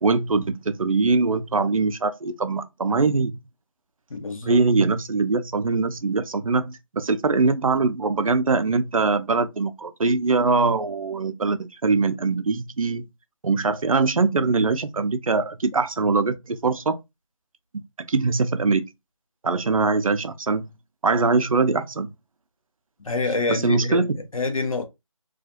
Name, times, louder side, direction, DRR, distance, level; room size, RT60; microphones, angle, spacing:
voice 1, 0.0-3.4 4.4-13.0 13.4-17.0 18.1-18.8 19.4-20.6 21.0-22.1 23.5-24.2, right 4 dB, 80° right, 0.5 m, -22 dB
voice 2, 4.1-4.6 23.0-24.0 24.3-24.9, left 3 dB, 75° left, 0.8 m, -26 dB
2.4 x 2.3 x 2.7 m
figure-of-eight pair, 165°, 17 cm